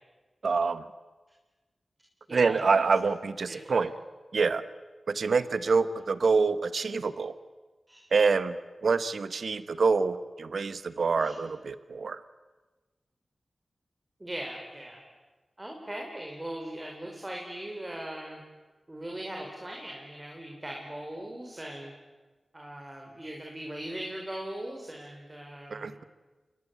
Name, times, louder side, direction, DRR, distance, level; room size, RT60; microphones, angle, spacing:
voice 1, 0.4-0.8 2.3-3.9 4.3-4.6 5.1-7.3 8.1-8.6 8.8-12.2 25.7-26.0, right 4 dB, 80° right, 14 dB, 1.2 m, -26 dB
voice 2, 2.3-3.1 3.5-3.9 7.9-8.1 11.2-11.4 14.2-15.0 15.6-18.4 18.9-21.9 22.5-25.9, right 1 dB, 25° right, 0 dB, 5.2 m, -40 dB
28.0 x 20.5 x 8.5 m, 1.2 s
cardioid pair, 55°, 0 cm